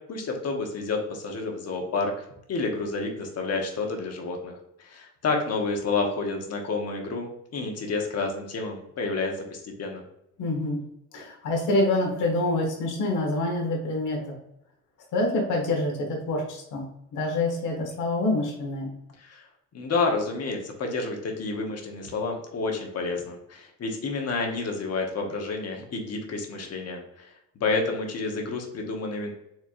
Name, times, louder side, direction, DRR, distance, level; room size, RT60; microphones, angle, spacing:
voice 1, 0.1-10.0 19.2-19.4 19.7-27.3 27.6-29.3, left 3 dB, 55° left, 2 dB, 1.1 m, -30 dB
voice 2, 10.4-10.8 11.1-14.3 15.1-16.8 17.1-18.9, left 2 dB, 80° left, 0 dB, 1.3 m, -26 dB
4.5 x 3.3 x 2.5 m, 0.79 s
cardioid pair, 90°, 30 cm